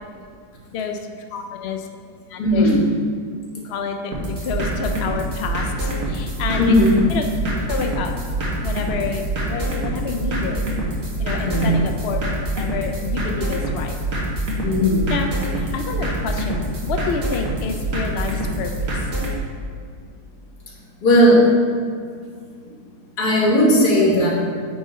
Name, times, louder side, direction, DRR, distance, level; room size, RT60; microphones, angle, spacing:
voice 1, 1.3-1.9 2.3-2.7 3.6-6.7 7.1-7.3 7.7-8.1 8.6-10.6 11.2-12.2 12.6-13.9 15.1-15.3 15.7-19.1, left 5 dB, 65° left, 4 dB, 0.6 m, -28 dB
voice 2, 2.4-2.8 6.5-7.0 11.4-11.7 14.6-15.1 21.0-21.4 23.2-24.3, equal, 90° left, -3 dB, 1.9 m, -16 dB
sound 1, 4.1-19.4, right 1 dB, 60° right, 1.6 m, -25 dB
8.6 x 3.6 x 4.2 m, 2.1 s
omnidirectional pair, 1.6 m